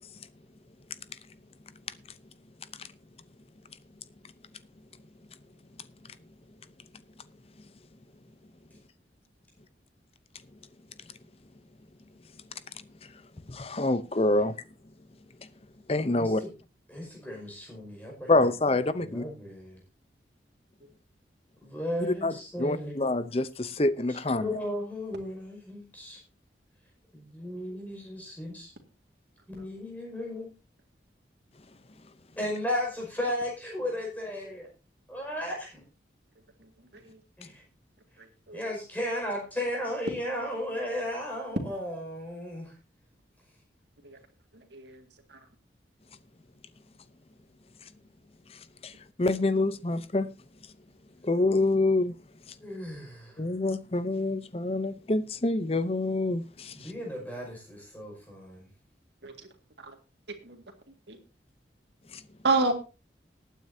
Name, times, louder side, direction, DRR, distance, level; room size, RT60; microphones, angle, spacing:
voice 1, 13.5-14.6 15.9-16.4 18.3-19.2 22.2-22.3 22.6-24.5 48.8-48.9 49.2-50.3 51.2-52.1 53.4-56.9 62.1-62.2, left 2 dB, 35° left, 0.7 m, -26 dB
voice 2, 16.2-16.5 16.9-18.5 19.0-19.8 21.6-22.9 24.1-26.2 27.1-28.7 29.5-30.5 32.4-34.7 35.1-35.8 37.4-37.6 38.5-42.7 52.6-53.4 56.8-58.7, left 1 dB, 10° left, 5.4 m, -35 dB
voice 3, 38.2-38.7 44.0-44.2 44.5-45.0 45.3-45.4 59.2-59.3 59.8-59.9 60.4-60.6 61.1-61.2 62.4-62.7, right 3 dB, 75° right, 2.1 m, -29 dB
20.0 x 9.3 x 2.8 m
head